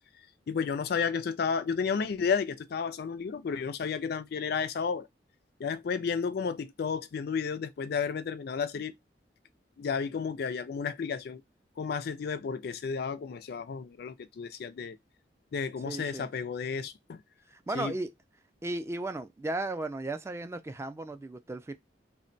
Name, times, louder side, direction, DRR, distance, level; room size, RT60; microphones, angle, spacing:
voice 1, 0.5-5.1 5.6-8.9 9.8-11.4 11.8-15.0 15.5-17.2 17.7-17.9, left 6 dB, 60° left, 0.4 m, -32 dB
voice 2, 15.8-16.3 17.5-18.1 18.6-21.7, right 2 dB, 15° right, 0.3 m, -35 dB
2.2 x 2.1 x 3.8 m
head